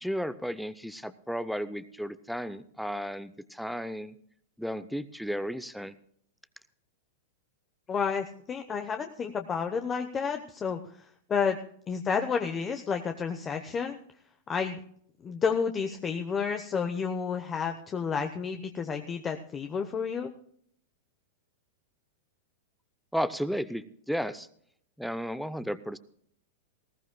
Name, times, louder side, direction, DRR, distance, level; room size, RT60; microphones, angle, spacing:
voice 1, 0.0-4.1 4.6-5.9 23.1-24.5 25.0-26.0, equal, ahead, 13 dB, 0.5 m, -33 dB
voice 2, 7.9-11.6 11.9-14.0 14.5-14.8 15.2-20.3, left 6 dB, 20° left, 6 dB, 0.9 m, -31 dB
19.0 x 15.5 x 2.2 m, 0.65 s
supercardioid pair, 145°, 0 cm